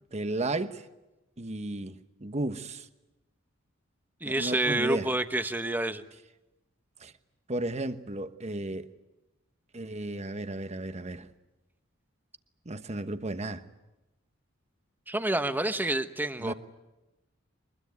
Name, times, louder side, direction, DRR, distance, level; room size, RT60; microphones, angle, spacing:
voice 1, 0.1-0.8 1.4-2.9 4.2-5.1 7.0-7.1 7.5-8.9 9.7-11.3 12.6-13.6 16.4-16.5, right 2 dB, 35° right, 1.2 m, -34 dB
voice 2, 4.2-6.0 15.1-16.5, right 1 dB, 10° right, 1.1 m, -28 dB
23.5 x 21.0 x 9.6 m
head